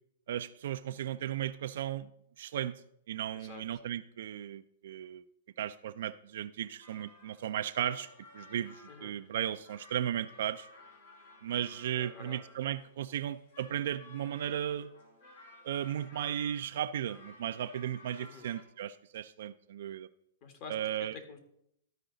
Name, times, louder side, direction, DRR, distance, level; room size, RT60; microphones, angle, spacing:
voice 1, 0.3-2.1 2.4-2.8 3.1-5.2 5.6-8.1 8.3-10.7 11.4-14.9 15.6-20.1 20.7-21.1, right 10 dB, 70° right, 9 dB, 0.3 m, -35 dB
sound 1, 6.8-18.6, left 2 dB, 70° left, 2.5 m, -56 dB
voice 2, 11.9-12.4 18.2-18.5 20.4-20.7 21.0-21.4, left 5 dB, 40° left, 6 dB, 1.6 m, -48 dB
13.0 x 4.9 x 3.9 m, 0.74 s
hypercardioid pair, 140°, 0 cm